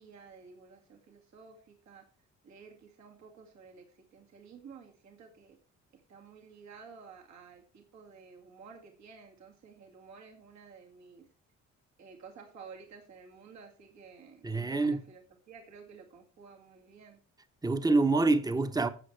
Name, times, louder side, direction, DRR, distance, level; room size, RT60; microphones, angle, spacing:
voice 1, 0.0-2.0 2.4-3.9 4.1-5.6 6.1-11.3 12.0-15.2 15.5-17.2, right 5 dB, 65° right, 2.2 m, -52 dB
voice 2, 14.4-15.0 17.6-18.9, right 3 dB, 15° right, 1.0 m, -26 dB
12.5 x 7.8 x 3.3 m
cardioid pair, 90°, 30 cm